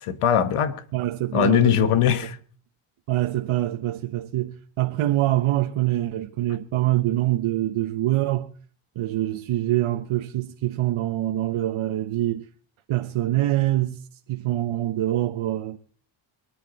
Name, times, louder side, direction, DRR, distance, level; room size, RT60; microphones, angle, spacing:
voice 1, 0.0-0.8 1.3-2.4, left 10 dB, 85° left, 1.9 m, -20 dB
voice 2, 0.9-1.9 3.1-8.5 8.9-12.5 12.9-15.8, right 14 dB, 75° right, 1.3 m, -25 dB
23.5 x 10.0 x 4.2 m
cardioid pair, 85°, 50 cm